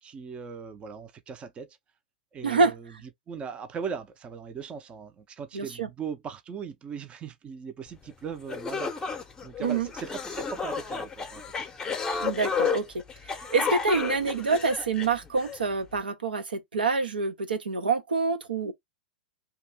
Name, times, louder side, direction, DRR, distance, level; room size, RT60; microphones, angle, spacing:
voice 1, 0.0-1.8 2.3-2.9 3.3-11.7, right 6 dB, 25° right, 0.5 m, -39 dB
voice 2, 2.4-2.7 5.5-5.9 9.6-9.9 12.2-18.7, right 4 dB, 85° right, 0.7 m, -27 dB
sound 1, 8.1-8.2 8.5-15.6, left 6 dB, 15° left, 0.7 m, -32 dB
2.8 x 2.4 x 3.3 m
hypercardioid pair, 110°, 5 cm